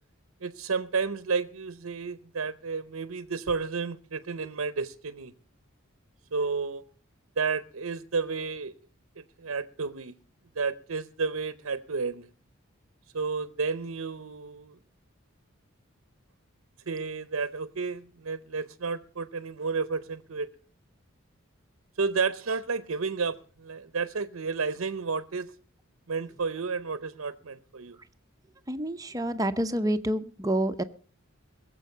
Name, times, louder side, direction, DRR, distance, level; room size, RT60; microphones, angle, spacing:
voice 1, 0.4-5.3 6.3-6.8 7.4-8.7 9.4-10.1 10.6-12.3 13.1-14.7 16.9-20.5 22.0-25.5 26.1-28.0, right 4 dB, 90° right, 0.8 m, -31 dB
voice 2, 28.7-30.8, right 1 dB, 15° right, 0.8 m, -28 dB
21.0 x 7.7 x 6.6 m
head